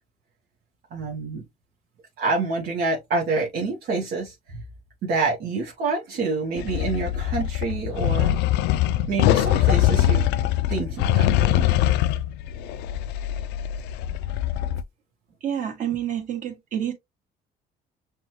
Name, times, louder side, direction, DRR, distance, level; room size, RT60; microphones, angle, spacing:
voice 1, 0.9-1.4 2.2-4.3 5.0-8.4 9.1-10.2 10.7-11.7, right 3 dB, 70° right, 1.2 m, -27 dB
sound 1, 6.6-14.8, left 12 dB, 85° left, 0.4 m, -22 dB
voice 2, 15.4-16.9, right 9 dB, 50° right, 1.6 m, -28 dB
6.0 x 2.3 x 3.0 m
cardioid pair, 110°, 17 cm